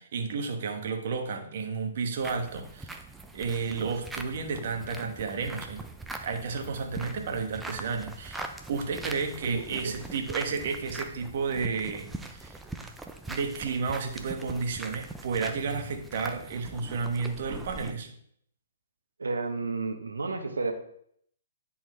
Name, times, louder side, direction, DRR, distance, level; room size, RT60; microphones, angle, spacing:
voice 1, 0.0-3.0 3.3-5.9 6.2-12.6 13.3-18.1, right 5 dB, 55° right, 5 dB, 1.2 m, -32 dB
sound 1, 2.2-17.9, right 2 dB, 5° right, 0.6 m, -42 dB
voice 2, 9.5-10.0 19.2-20.7, right 3 dB, 80° right, 6 dB, 1.1 m, -32 dB
10.5 x 4.2 x 3.3 m, 0.67 s
figure-of-eight pair, 130°, 0 cm